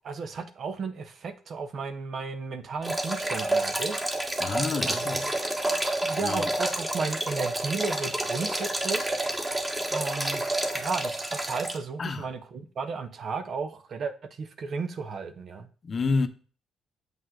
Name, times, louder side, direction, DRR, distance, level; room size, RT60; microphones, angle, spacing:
voice 1, 0.0-4.0 4.8-5.3 6.0-9.2 9.9-15.7, right 4 dB, 55° right, 1.0 m, -34 dB
sound 1, 2.8-11.8, right 1 dB, 15° right, 1.6 m, -29 dB
voice 2, 4.4-5.3 6.2-6.5 12.0-12.3 15.8-16.3, left 4 dB, 40° left, 0.9 m, -29 dB
7.8 x 5.4 x 3.8 m
cardioid pair, 90°, 0 cm